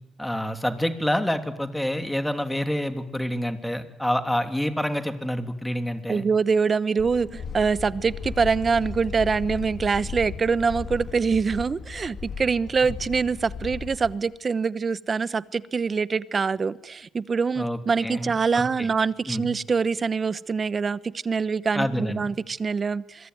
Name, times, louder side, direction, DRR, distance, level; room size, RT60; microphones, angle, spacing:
voice 1, 0.2-6.3 17.6-18.9 19.3-19.5 21.7-22.3, equal, 5° left, 3.1 m, -27 dB
voice 2, 6.1-23.3, right 5 dB, 40° right, 1.0 m, -24 dB
sound 1, 7.0-14.1, left 5 dB, 55° left, 3.7 m, -36 dB
27.0 x 23.5 x 9.5 m
cardioid pair, 90°, 0 cm